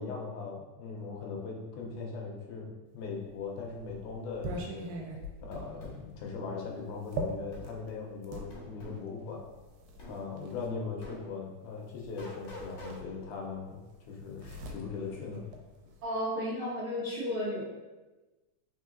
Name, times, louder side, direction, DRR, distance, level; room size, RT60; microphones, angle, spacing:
voice 1, 0.0-4.9 5.5-9.4 10.1-13.8 14.1-15.4, left 4 dB, 80° left, -1 dB, 1.9 m, -39 dB
sound 1, 3.2-8.5 9.4-10.7 12.0-12.1 12.4-13.5 13.8-16.0, right 2 dB, 85° right, 2.3 m, -42 dB
sound 2, 5.5-6.0 7.5-7.7 8.5-9.0 10.0-10.2 11.0-11.2 12.2-13.0, equal, 55° left, 1.4 m, -45 dB
voice 2, 16.0-17.6, equal, 65° right, -12 dB, 1.3 m, -33 dB
4.4 x 3.7 x 2.4 m, 1.2 s
omnidirectional pair, 3.8 m